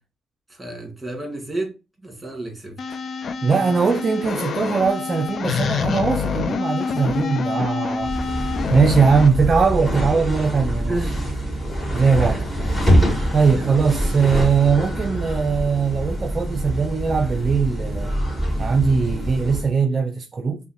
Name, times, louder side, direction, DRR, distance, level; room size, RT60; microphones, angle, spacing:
voice 1, 0.5-1.7 2.0-2.8 10.8-11.3 12.2-12.4 13.5-14.8 15.1-15.2, right 2 dB, 15° right, 1.8 m, -32 dB
sound 1, 2.8-9.3, left 5 dB, 50° left, 0.3 m, -26 dB
voice 2, 3.4-8.1 8.7-11.0 11.9-12.5 13.3-18.1 18.6-20.6, right 5 dB, 40° right, 0.4 m, -20 dB
sound 2, 8.0-19.7, right 1 dB, 10° left, 2.1 m, -24 dB
5.4 x 2.1 x 2.7 m
cardioid pair, 90°, 0 cm